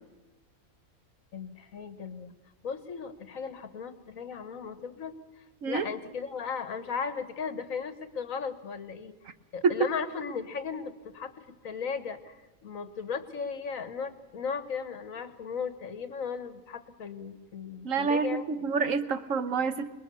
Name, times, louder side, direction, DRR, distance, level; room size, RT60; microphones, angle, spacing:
voice 1, 1.3-2.3 2.6-18.7, left 6 dB, 70° left, 11 dB, 1.7 m, -36 dB
voice 2, 17.8-19.9, right 5 dB, 65° right, 11 dB, 1.4 m, -28 dB
27.0 x 21.0 x 6.9 m, 1.1 s
omnidirectional pair, 1.5 m